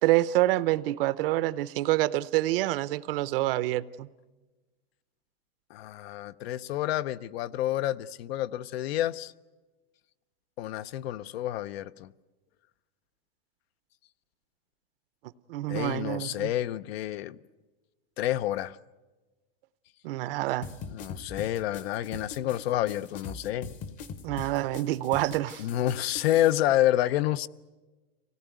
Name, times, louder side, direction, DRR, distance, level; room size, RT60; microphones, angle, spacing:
voice 1, 0.0-4.1 15.5-16.5 20.0-20.7 24.2-25.6, right 16 dB, 65° right, 0.7 m, -27 dB
voice 2, 5.7-9.3 10.6-12.1 15.7-17.4 18.2-18.8 20.9-23.7 25.6-27.5, left 13 dB, 80° left, 0.7 m, -29 dB
sound 1, 20.6-26.6, left 5 dB, 25° left, 0.8 m, -42 dB
24.5 x 18.0 x 9.2 m
supercardioid pair, 170°, 30 cm